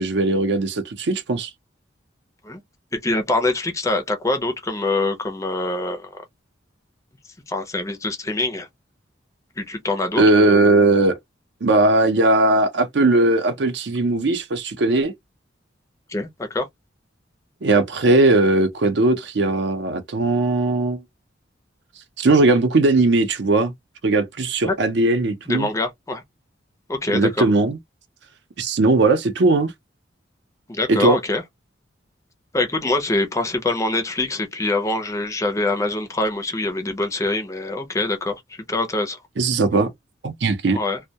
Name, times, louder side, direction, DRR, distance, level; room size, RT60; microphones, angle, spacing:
voice 1, 0.0-1.5 10.2-11.2 11.6-15.1 17.6-21.0 22.2-23.7 24.0-25.7 27.1-27.8 28.6-29.7 30.9-31.2 39.4-39.9 40.2-40.8, right 2 dB, 60° right, 0.5 m, -18 dB
voice 2, 3.0-6.1 7.5-8.7 9.6-10.8 16.1-16.7 24.6-24.7 25.5-26.2 26.9-27.5 30.7-31.4 32.5-39.2 40.7-41.0, left 2 dB, 15° left, 0.4 m, -24 dB
2.2 x 2.1 x 2.7 m
head